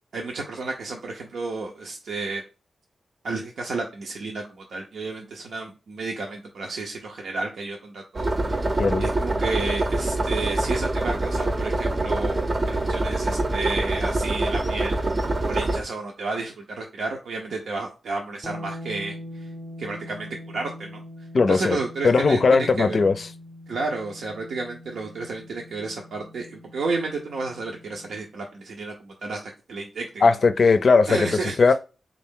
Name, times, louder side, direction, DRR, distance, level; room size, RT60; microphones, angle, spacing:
voice 1, 0.1-2.4 3.2-15.0 15.4-19.5 19.8-21.0 21.5-23.1 23.7-29.4 29.7-30.3 31.1-31.6, right 3 dB, 85° right, 0.7 m, -32 dB
sound 1, 8.2-15.8, right 2 dB, 40° right, 0.6 m, -25 dB
sound 2, 18.4-28.2, left 1 dB, 15° left, 0.6 m, -42 dB
voice 2, 21.3-21.8 22.0-23.3 30.2-31.3 31.6-31.7, left 4 dB, 60° left, 0.4 m, -18 dB
3.4 x 2.5 x 3.6 m
cardioid pair, 65°, 0 cm